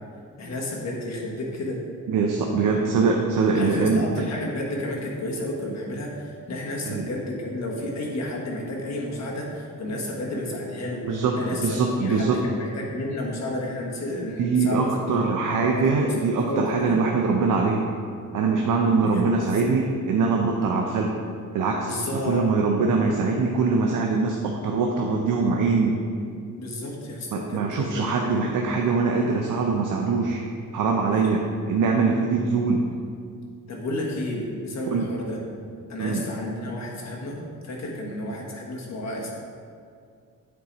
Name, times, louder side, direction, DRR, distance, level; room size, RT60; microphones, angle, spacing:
voice 1, 0.4-1.8 3.5-11.0 11.3-16.1 16.5-17.0 19.0-19.5 21.8-22.4 26.6-28.9 31.1-31.3 33.7-35.4 35.9-39.3, left 1 dB, 55° left, -3 dB, 1.6 m, -32 dB
voice 2, 2.1-4.2 6.9-7.0 11.1-12.4 14.4-17.9 18.3-21.1 21.5-25.9 27.3-30.4 30.7-32.9 34.9-35.1 36.0-36.2, right 4 dB, 70° right, 1 dB, 0.7 m, -23 dB
9.5 x 4.6 x 4.1 m, 2.2 s
wide cardioid pair, 135°, 33 cm